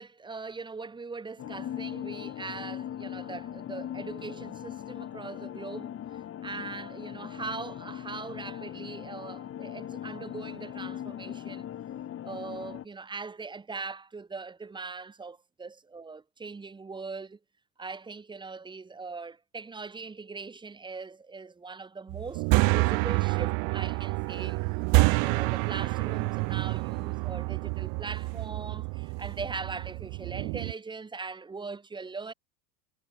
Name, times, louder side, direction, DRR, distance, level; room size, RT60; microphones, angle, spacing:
voice 1, 0.0-6.0 6.4-11.7 12.2-17.4 17.8-24.6 25.0-32.3, right 4 dB, 10° right, 1.3 m, -41 dB
sound 1, 1.4-12.8, left 10 dB, 35° left, 4.0 m, -39 dB
sound 2, 22.1-30.7, right 32 dB, 60° right, 1.1 m, -28 dB
supercardioid pair, 135°, 38 cm